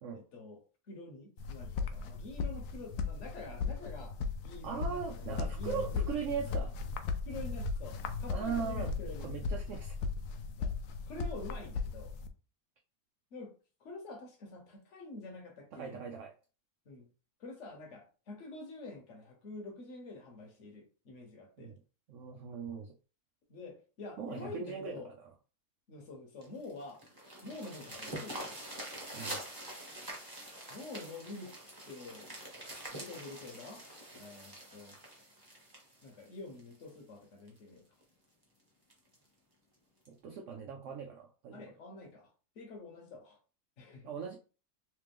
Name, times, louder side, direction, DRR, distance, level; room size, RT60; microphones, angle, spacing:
voice 1, 0.1-4.2 4.4-6.1 7.2-9.5 10.6-10.8 11.1-12.1 13.3-13.5 13.8-16.0 16.8-17.1 17.4-21.7 23.5-25.1 25.9-27.0 27.4-28.5 30.7-32.3 32.9-35.0 36.0-37.9 41.5-43.4 43.8-44.2, left 2 dB, 55° left, 1.3 m, -47 dB
sound 1, 1.4-12.3, left 4 dB, 85° left, 1.1 m, -37 dB
voice 2, 4.6-6.7 8.3-8.9 9.2-10.0 15.7-16.3 21.6-21.7 22.1-22.9 24.2-25.1 29.1-29.4 40.1-41.7 44.0-44.4, right 6 dB, 65° right, 0.9 m, -39 dB
sound 2, 26.4-36.9 37.5-37.6 38.0-38.1 38.4-38.5 38.9-39.2 40.1-40.2, right 1 dB, 15° right, 1.2 m, -45 dB
3.3 x 3.2 x 3.4 m
omnidirectional pair, 1.6 m